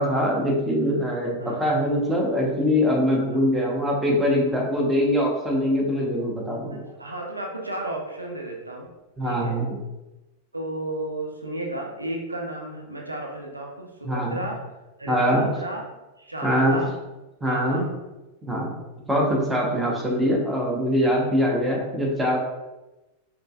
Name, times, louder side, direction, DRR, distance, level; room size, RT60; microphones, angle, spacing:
voice 1, 0.0-6.8 9.2-9.8 14.0-14.4 15.1-15.5 16.4-16.8 17.4-17.8 18.4-18.7 19.1-22.4, equal, 10° right, -2 dB, 1.0 m, -23 dB
voice 2, 6.7-8.9 9.2-9.6 10.5-14.6 15.0-15.9 16.2-16.9 17.5-17.9, right 1 dB, 85° right, 0 dB, 0.7 m, -33 dB
5.2 x 3.1 x 2.4 m, 1.1 s
figure-of-eight pair, 90°, 0 cm